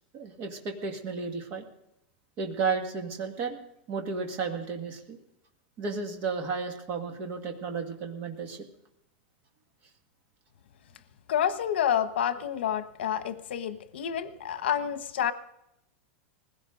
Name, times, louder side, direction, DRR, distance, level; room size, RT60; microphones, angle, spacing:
voice 1, 0.1-1.6 2.4-3.6 3.9-5.2 5.8-8.7, right 5 dB, 25° right, 4 dB, 1.8 m, -33 dB
voice 2, 11.3-15.3, left 9 dB, 75° left, 11 dB, 1.2 m, -29 dB
20.5 x 16.0 x 3.8 m, 0.83 s
supercardioid pair, 180°, 6 cm